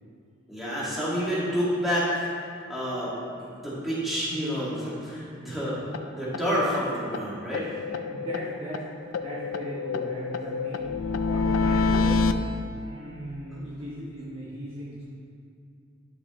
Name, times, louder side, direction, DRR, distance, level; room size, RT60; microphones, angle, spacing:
voice 1, 0.5-2.3 2.7-3.1 3.5-7.7 13.5-13.6, equal, ahead, -10 dB, 2.0 m, -29 dB
sound 1, 5.9-6.0 6.3-6.4 6.7-6.8 7.1-7.2 7.5-8.8 9.1-12.3, left 4 dB, 85° left, 0.5 m, -27 dB
voice 2, 7.9-8.9 9.2-10.9 11.2-12.4 12.7-15.0, equal, 30° right, -7 dB, 1.0 m, -38 dB
11.0 x 6.0 x 3.1 m, 2.4 s
head